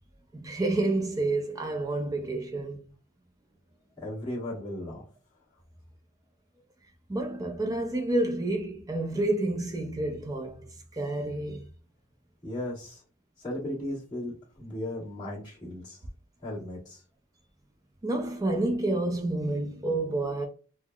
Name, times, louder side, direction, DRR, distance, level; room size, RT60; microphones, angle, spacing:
voice 1, 0.4-2.8 7.1-11.6 18.0-20.5, right 2 dB, 15° right, 0.4 m, -29 dB
voice 2, 4.0-5.0 12.4-13.0 13.4-16.0 16.4-17.0, left 1 dB, 20° left, 1.4 m, -36 dB
3.6 x 2.0 x 2.2 m
head